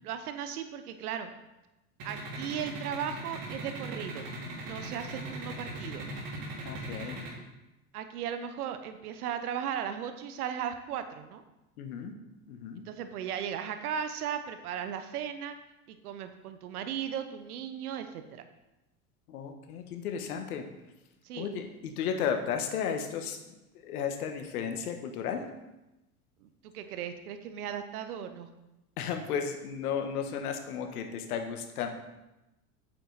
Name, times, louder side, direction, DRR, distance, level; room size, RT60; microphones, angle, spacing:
voice 1, 0.0-1.3 2.0-4.3 4.6-6.0 7.9-11.4 12.8-15.6 15.9-18.5 21.2-21.5 26.4-26.5 26.7-28.5, right 8 dB, 85° right, 9 dB, 0.9 m, -36 dB
sound 1, 2.0-7.3, right 2 dB, 50° right, 3.5 m, -39 dB
voice 2, 6.6-7.2 11.8-12.1 12.5-12.8 19.3-20.7 21.4-23.4 23.7-25.4 29.0-31.9, left 7 dB, 80° left, 6 dB, 1.3 m, -34 dB
9.0 x 6.9 x 4.0 m, 0.97 s
hypercardioid pair, 90°, 44 cm